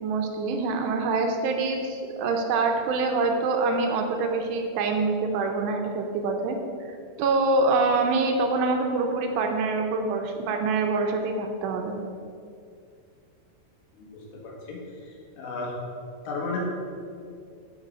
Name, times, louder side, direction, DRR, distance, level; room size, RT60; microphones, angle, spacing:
voice 1, 0.0-6.6 6.9-12.0, right 3 dB, 80° right, 3 dB, 2.8 m, -25 dB
voice 2, 14.4-14.8 15.4-15.7 16.3-16.6, left 3 dB, 75° left, -2 dB, 3.8 m, -32 dB
12.0 x 5.2 x 5.6 m, 2.3 s
omnidirectional pair, 5.2 m